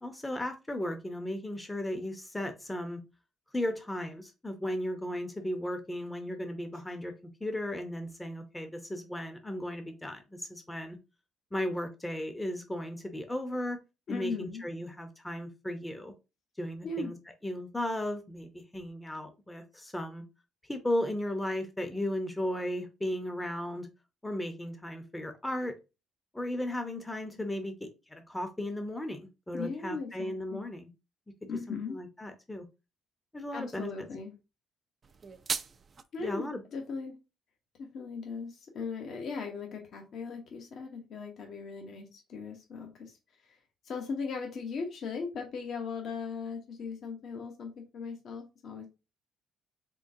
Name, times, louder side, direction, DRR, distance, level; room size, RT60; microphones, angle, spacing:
voice 1, 0.0-3.0 3.5-7.1 7.4-11.0 11.5-13.8 14.1-16.1 16.6-17.2 17.4-20.2 20.7-23.9 24.2-25.7 26.3-30.9 31.7-32.7 33.3-33.9 36.2-36.6, left 1 dB, 10° left, 6 dB, 0.7 m, -35 dB
voice 2, 14.1-14.6 16.8-17.1 29.5-30.7 31.5-32.0 33.5-34.3 36.1-37.1 37.8-43.6 43.8-48.9, left 4 dB, 60° left, 2 dB, 0.9 m, -38 dB
sound 1, 35.0-36.0, right 5 dB, 40° right, 0.4 m, -36 dB
3.7 x 3.4 x 2.7 m, 0.28 s
cardioid pair, 85°, 0 cm